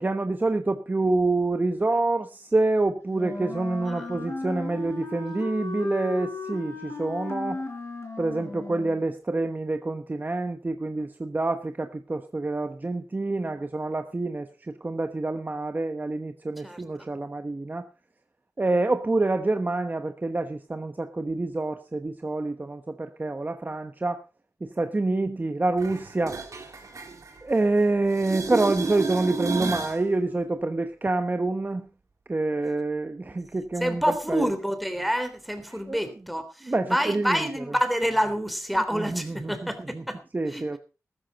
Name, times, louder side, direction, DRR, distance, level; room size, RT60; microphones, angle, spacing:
voice 1, 0.0-7.6 8.2-17.9 18.6-24.2 24.6-26.4 27.4-31.9 32.3-34.0 34.3-34.5 35.9-36.0 36.6-37.6 38.9-40.0 40.3-40.8, right 2 dB, 30° right, 7 dB, 1.1 m, -27 dB
Wind instrument woodwind instrument, 3.1-9.0, left 3 dB, 50° left, 4.6 m, -36 dB
voice 2, 16.6-17.1 33.8-40.2 40.5-40.6, equal, ahead, 9 dB, 3.3 m, -28 dB
sound 1, 25.8-27.8 28.1-30.0 35.8-35.9, right 4 dB, 65° right, 3.1 m, -32 dB
14.0 x 14.0 x 4.1 m, 0.32 s
cardioid pair, 65°, 6 cm